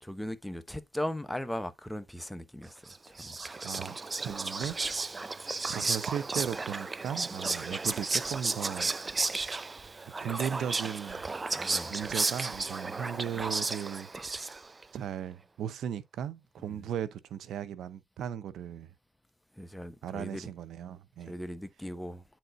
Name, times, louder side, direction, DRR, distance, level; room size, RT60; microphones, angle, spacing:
voice 1, 0.0-3.4 11.5-12.0 16.6-16.9 19.6-20.5 21.2-22.2, left 1 dB, 5° left, 0.8 m, -38 dB
Whispering, 2.9-14.8, right 3 dB, 25° right, 0.4 m, -33 dB
voice 2, 3.6-4.8 5.7-8.9 10.2-11.2 11.9-14.1 14.9-18.9 20.0-21.3, right 9 dB, 75° right, 0.7 m, -37 dB
9.0 x 4.3 x 2.5 m
cardioid pair, 90°, 0 cm